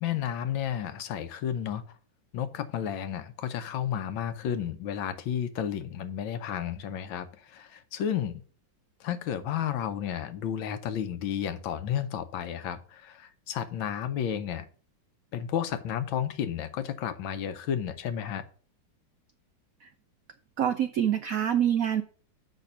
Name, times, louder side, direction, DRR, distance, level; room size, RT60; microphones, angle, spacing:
voice 1, 0.0-1.8 2.3-8.4 9.0-14.7 15.3-18.4, left 9 dB, 80° left, 1.5 m, -32 dB
voice 2, 20.6-22.0, right 9 dB, 90° right, 0.7 m, -26 dB
6.8 x 5.7 x 5.7 m
omnidirectional pair, 2.2 m